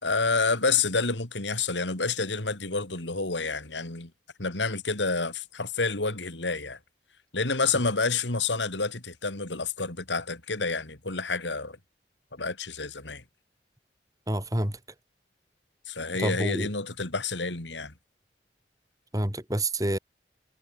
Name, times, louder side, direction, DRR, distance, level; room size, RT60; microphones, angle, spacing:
voice 1, 0.0-4.1 4.4-6.8 7.3-11.8 12.3-13.2 15.9-17.9, left 4 dB, 90° left, 3.4 m, -29 dB
voice 2, 14.3-14.8 16.2-16.7 19.1-20.0, right 1 dB, 20° right, 3.4 m, -28 dB
head